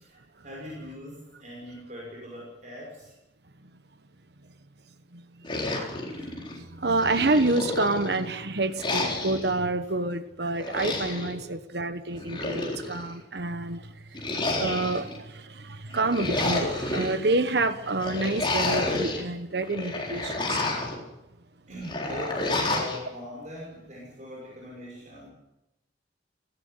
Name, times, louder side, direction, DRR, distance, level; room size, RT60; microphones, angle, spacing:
voice 1, 0.0-3.1 21.7-25.3, equal, 40° right, -3 dB, 6.0 m, -40 dB
voice 2, 5.1-5.5 6.2-20.7, right 2 dB, 60° right, 11 dB, 1.2 m, -28 dB
sound 1, 5.4-6.6 7.0-8.2 8.8-9.5 10.6-11.3 12.1-13.1 14.1-15.2 15.9-17.1 18.0-19.2 19.6-21.0 21.8-23.0, left 2 dB, 25° left, 4.1 m, -30 dB
18.5 x 17.0 x 9.7 m, 0.92 s
head